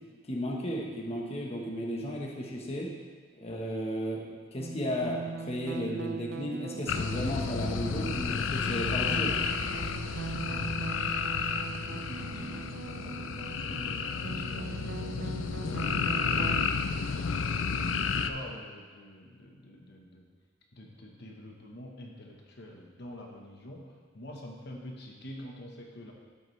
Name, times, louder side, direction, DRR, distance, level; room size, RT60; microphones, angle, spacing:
voice 1, 0.3-2.9 3.4-9.4 9.7-9.9, equal, 30° left, -2 dB, 1.2 m, -34 dB
sound 1, 4.6-16.6, right 4 dB, 60° right, 0.4 m, -40 dB
sound 2, 6.9-18.3, left 5 dB, 85° left, 0.5 m, -31 dB
voice 2, 10.3-11.3 11.8-20.3 20.7-26.1, left 1 dB, 60° left, 0 dB, 1.2 m, -46 dB
12.0 x 8.4 x 3.3 m, 1.5 s
head